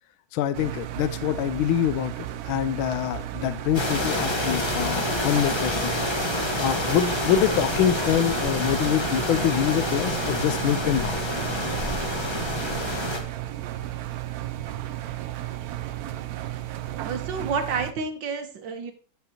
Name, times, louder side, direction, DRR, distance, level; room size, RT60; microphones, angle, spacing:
voice 1, 0.3-5.9 6.6-11.2, left 10 dB, 85° left, 12 dB, 1.4 m, -25 dB
Engine, 0.5-17.9, right 13 dB, 85° right, 0.8 m, -34 dB
sound 1, 3.7-13.2, left 1 dB, 20° left, 0.9 m, -28 dB
voice 2, 17.0-18.9, right 5 dB, 65° right, 7 dB, 1.7 m, -29 dB
14.0 x 5.4 x 2.9 m, 0.38 s
omnidirectional pair, 2.2 m